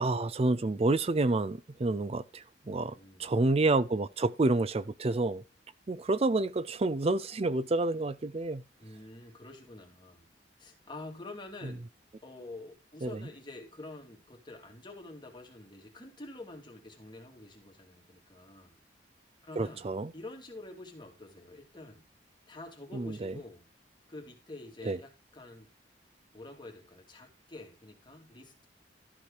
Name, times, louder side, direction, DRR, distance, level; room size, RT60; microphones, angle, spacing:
voice 1, 0.0-2.9 3.2-5.4 5.9-8.6 13.0-13.1 19.6-20.1 23.0-23.3 24.8-25.0, right 2 dB, 35° right, 0.5 m, -29 dB
voice 2, 2.6-3.4 8.8-10.2 10.6-11.9 12.2-18.8 19.4-19.9 20.1-22.0 22.5-23.7 24.1-25.7 26.3-28.7, left 2 dB, 25° left, 2.8 m, -47 dB
13.5 x 4.9 x 4.8 m
head